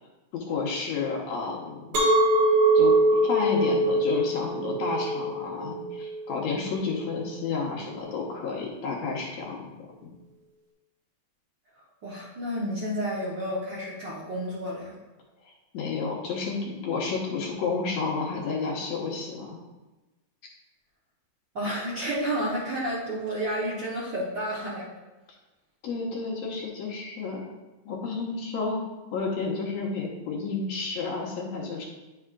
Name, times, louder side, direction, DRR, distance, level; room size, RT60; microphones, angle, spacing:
voice 1, 0.3-2.0 2.7-9.7 10.0-10.1 15.7-19.6 25.8-27.4 27.9-28.8 29.1-31.9, left 4 dB, 70° left, -3 dB, 2.2 m, -31 dB
Chink clink, 1.9-7.1, right 2 dB, 70° right, 2.7 m, -23 dB
voice 2, 12.0-14.9 21.5-24.9, equal, 55° right, -7 dB, 1.3 m, -31 dB
9.9 x 5.6 x 2.4 m, 1.1 s
omnidirectional pair, 3.3 m